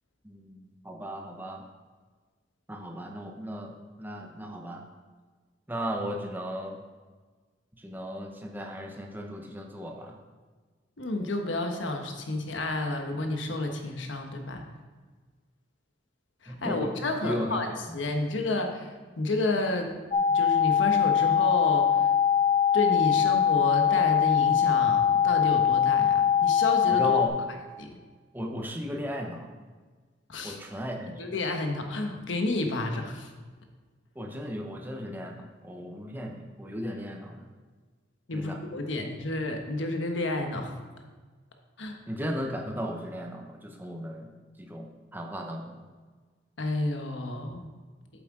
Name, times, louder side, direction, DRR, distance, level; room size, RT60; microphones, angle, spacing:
voice 1, 0.2-1.6 2.7-4.8 5.7-6.8 7.8-10.2 16.5-17.6 17.9-18.0 26.9-27.3 28.3-29.5 30.4-31.1 34.2-37.5 38.3-38.6 42.1-44.3 44.6-45.8, equal, 10° right, 2 dB, 0.8 m, -36 dB
voice 2, 11.0-14.6 16.4-19.9 20.3-22.1 22.7-27.2 27.8-27.9 30.3-30.6 31.2-33.3 38.3-40.7 41.8-42.0 46.6-47.7, left 2 dB, 80° left, 4 dB, 1.1 m, -30 dB
sound 1, 20.1-27.3, left 8 dB, 35° left, 1.0 m, -22 dB
8.5 x 7.7 x 3.7 m, 1.4 s
head